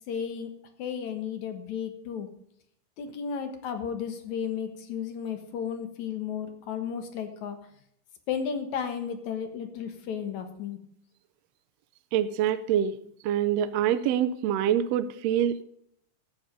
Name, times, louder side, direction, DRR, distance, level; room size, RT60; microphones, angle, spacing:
voice 1, 0.1-0.5 0.8-2.3 3.0-7.6 8.3-10.8, left 7 dB, 65° left, 7 dB, 2.6 m, -33 dB
voice 2, 12.1-13.0 13.2-15.6, right 10 dB, 80° right, 12 dB, 1.5 m, -25 dB
13.5 x 8.9 x 5.3 m, 0.70 s
omnidirectional pair, 3.7 m